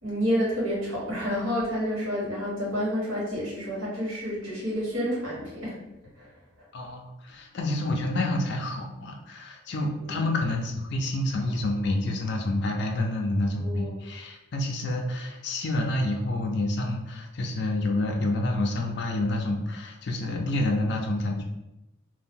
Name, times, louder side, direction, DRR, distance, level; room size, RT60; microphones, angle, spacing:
voice 1, 0.0-5.8 6.2-6.3 10.0-10.3 13.6-14.0, equal, 80° right, -6 dB, 1.4 m, -29 dB
voice 2, 6.7-21.4, left 1 dB, 55° left, 1 dB, 0.4 m, -28 dB
2.6 x 2.2 x 3.5 m, 0.93 s
head